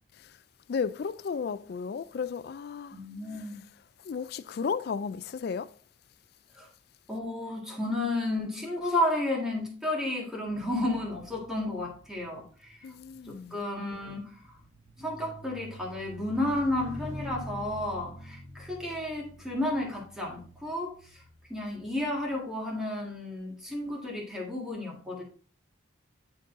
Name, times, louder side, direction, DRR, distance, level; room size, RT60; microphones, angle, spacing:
voice 1, 0.7-3.0 4.0-5.7 12.8-13.6, left 6 dB, 55° left, 0.3 m, -34 dB
voice 2, 2.9-3.6 6.5-6.7 7.1-12.9 13.2-14.6 15.0-21.2 21.5-25.2, left 1 dB, 5° right, 1.8 m, -32 dB
sound 1, 10.5-22.1 22.8-23.1, equal, 35° right, 1.8 m, -47 dB
10.0 x 3.9 x 2.6 m
head